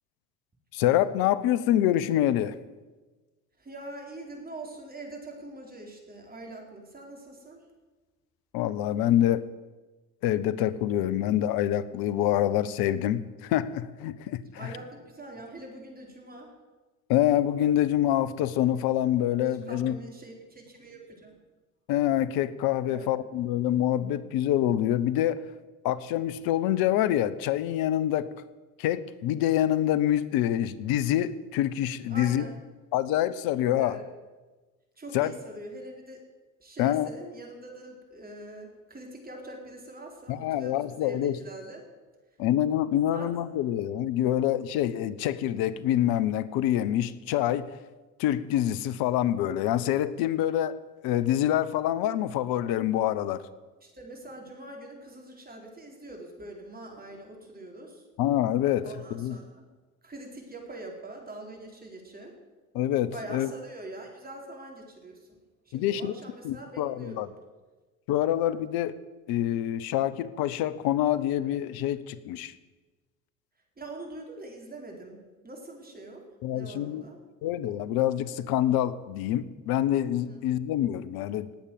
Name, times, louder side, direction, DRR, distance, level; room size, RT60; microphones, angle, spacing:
voice 1, 0.7-2.6 8.5-9.5 10.2-14.7 17.1-20.0 21.9-25.5 25.8-28.3 28.8-32.5 32.9-34.0 35.1-35.3 36.8-37.1 40.3-41.4 42.4-47.7 48.2-53.4 58.2-59.4 62.7-63.5 65.7-66.1 66.4-67.3 68.1-69.0 69.3-72.5 76.4-77.0 77.4-81.5, left 12 dB, 55° left, 17 dB, 0.9 m, -26 dB
voice 2, 3.6-7.6 14.5-16.5 19.5-21.3 22.8-23.2 32.1-32.6 33.8-34.0 35.0-36.2 36.6-41.8 43.0-43.3 53.8-58.0 58.8-59.7 60.0-62.4 63.1-65.4 65.7-67.3 73.8-76.2 76.5-77.2 80.3-80.4, right 1 dB, 20° right, 1 dB, 4.2 m, -44 dB
19.0 x 8.3 x 7.8 m, 1.2 s
hypercardioid pair, 65°, 43 cm